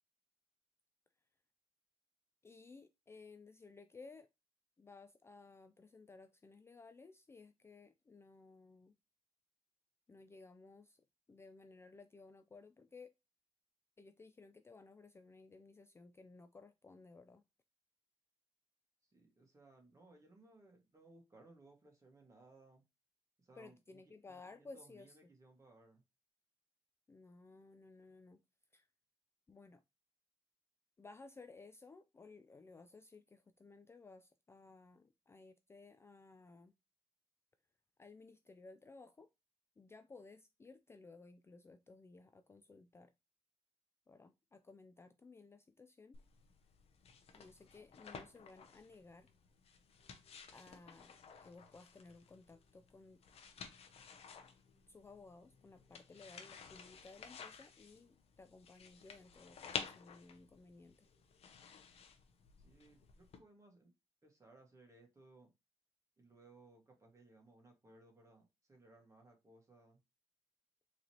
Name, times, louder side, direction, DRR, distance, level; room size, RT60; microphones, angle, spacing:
voice 1, 2.4-4.3 4.8-8.9 10.1-13.1 14.0-17.4 23.6-25.2 27.1-28.4 28.7-28.9 29.5-29.8 31.0-36.7 38.0-39.3 39.8-43.1 44.1-46.2 47.3-49.3 50.5-51.1 51.4-53.2 54.9-61.1, left 3 dB, 20° left, 0.3 m, -58 dB
voice 2, 19.0-22.8 23.4-26.0 62.6-63.9 64.2-65.5 66.2-70.0, right 2 dB, 30° right, 1.7 m, -63 dB
sound 1, 46.1-63.4, left 6 dB, 65° left, 0.7 m, -52 dB
3.8 x 3.1 x 2.8 m
cardioid pair, 85°, 11 cm